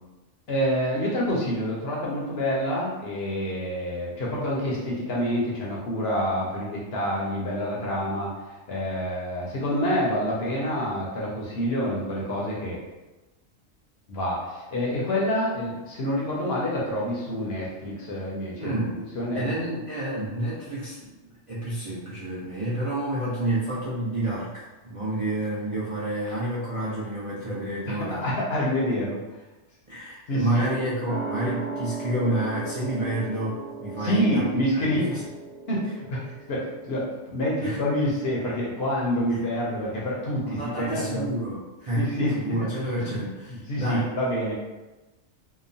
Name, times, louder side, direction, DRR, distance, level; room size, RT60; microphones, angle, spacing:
voice 1, 0.5-12.8 14.1-18.7 19.1-19.4 27.9-29.2 30.3-30.7 34.0-35.2 35.7-36.2 36.5-41.2 42.0-42.7 43.0-43.2 43.5-44.6, equal, 60° left, -4 dB, 0.8 m, -27 dB
voice 2, 18.6-19.0 19.3-21.1 21.5-28.3 29.9-34.9 37.6-37.8 39.3-39.4 40.4-42.1 42.3-44.1, right 1 dB, 45° right, -9 dB, 0.4 m, -29 dB
sound 1, 31.1-38.1 38.4-38.5, right 4 dB, 65° right, 1.0 m, -38 dB
2.9 x 2.1 x 2.6 m, 1.1 s
omnidirectional pair, 1.4 m